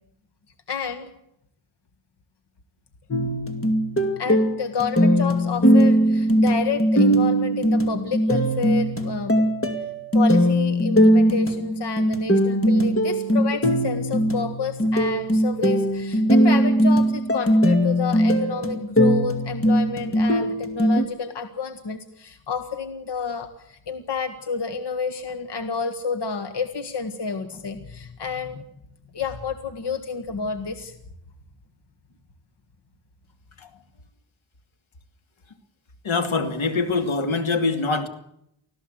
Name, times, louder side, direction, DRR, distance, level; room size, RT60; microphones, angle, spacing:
voice 1, 0.7-1.1 4.2-9.4 10.1-28.6 29.1-31.0 33.6-33.7, left 5 dB, 60° left, 8 dB, 1.8 m, -30 dB
sound 1, 3.1-21.0, equal, 30° left, 2.4 m, -20 dB
voice 2, 36.0-38.1, left 3 dB, 80° left, 7 dB, 2.7 m, -23 dB
25.0 x 16.0 x 8.0 m, 0.76 s
wide cardioid pair, 140°, 47 cm